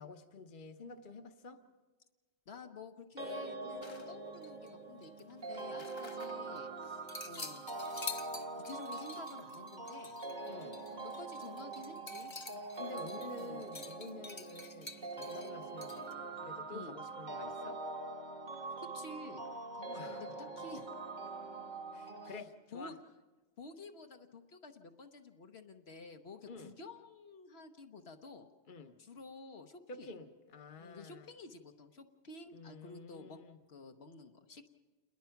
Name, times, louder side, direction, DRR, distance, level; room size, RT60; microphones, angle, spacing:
voice 1, 0.0-1.6 10.4-10.8 12.7-17.8 19.9-20.5 21.9-23.0 26.5-26.7 28.7-29.0 29.9-31.3 32.5-33.6, left 3 dB, 50° left, 7 dB, 1.2 m, -49 dB
voice 2, 2.5-7.6 8.6-10.2 10.9-12.3 13.0-13.1 13.4-13.6 16.7-17.0 18.8-19.5 19.7-20.9 22.2-22.3 22.7-22.9 23.6-28.5 29.0-30.1 30.8-33.4 33.7-34.7, left 3 dB, 70° left, 5 dB, 1.3 m, -51 dB
sound 1, 3.2-22.4, right 3 dB, 45° right, 1.4 m, -44 dB
sound 2, 3.8-4.7 5.0-6.6 7.1-16.1, left 3 dB, 30° left, 0.8 m, -49 dB
28.5 x 21.0 x 5.8 m, 1.3 s
omnidirectional pair, 1.1 m